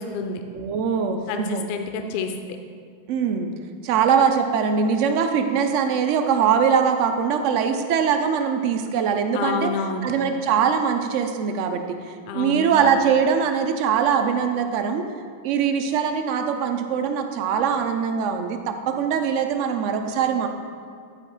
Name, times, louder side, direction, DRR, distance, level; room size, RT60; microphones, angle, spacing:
voice 1, 0.0-0.4 1.3-2.3 9.3-10.1 12.3-12.9, left 4 dB, 45° left, 5 dB, 0.7 m, -28 dB
voice 2, 0.5-1.6 3.1-3.5 3.8-9.7 10.0-15.1 15.4-20.5, right 7 dB, 45° right, 6 dB, 0.7 m, -22 dB
10.5 x 4.8 x 4.6 m, 2.3 s
figure-of-eight pair, 90°, 0 cm